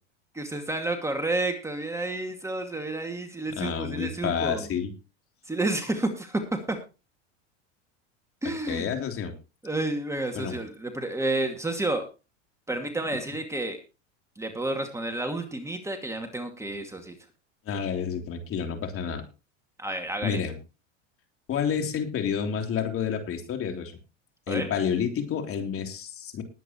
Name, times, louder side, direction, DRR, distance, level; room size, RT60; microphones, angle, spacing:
voice 1, 0.3-4.7 5.5-6.8 8.4-8.9 9.6-12.0 12.7-13.8 14.4-17.2 19.8-20.4 24.5-24.7, right 2 dB, 10° right, 5 dB, 2.3 m, -30 dB
voice 2, 3.6-4.9 8.7-9.3 10.3-10.6 17.6-19.2 20.2-20.5 21.5-23.9 24.5-26.4, left 7 dB, 35° left, 5 dB, 3.4 m, -29 dB
20.5 x 9.0 x 3.1 m, 0.31 s
supercardioid pair, 110°, 37 cm